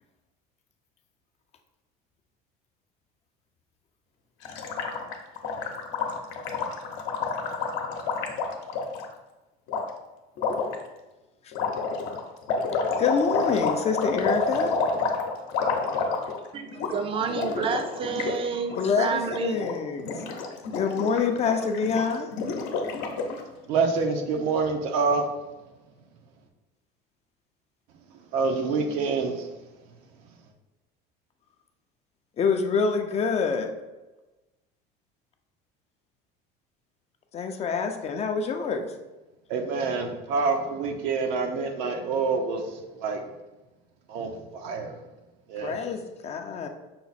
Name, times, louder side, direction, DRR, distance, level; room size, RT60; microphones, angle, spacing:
Gurgling, 4.4-9.1 9.7-9.8 10.4-10.8 11.5-16.5 16.7-16.9 17.2-18.4 18.6-18.8 19.2-19.7 20.0-23.4, left 4 dB, 70° left, 0.8 m, -29 dB
voice 1, 13.0-14.7 18.8-20.2 20.7-22.3 32.4-33.7 37.3-38.9 45.6-46.7, left 5 dB, 30° left, 0.4 m, -26 dB
voice 2, 16.5-19.6, right 5 dB, 25° right, 0.4 m, -29 dB
voice 3, 23.7-25.3 28.3-29.5 39.5-43.2 44.1-44.9 45.5-45.8, right 4 dB, 75° right, 0.7 m, -27 dB
5.7 x 2.0 x 4.1 m
cardioid pair, 120°, 20 cm